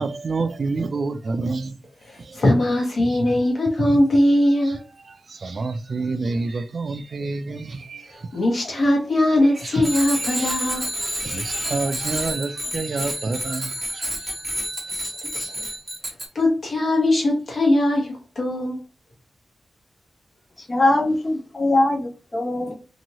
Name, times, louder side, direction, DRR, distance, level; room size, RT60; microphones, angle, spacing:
voice 1, 0.0-1.8 2.2-2.4 3.1-3.3 3.8-4.0 4.6-8.4 9.6-14.4, right 3 dB, 55° right, 0.3 m, -29 dB
voice 2, 2.1-4.8 8.3-10.9 15.0-15.6 16.3-18.8, left 1 dB, 55° left, 1.3 m, -20 dB
Bicycle bell, 9.8-16.3, right 1 dB, 15° right, 1.1 m, -29 dB
voice 3, 20.6-22.7, left 2 dB, 25° left, 0.7 m, -21 dB
2.9 x 2.6 x 2.8 m
wide cardioid pair, 130°, 0 cm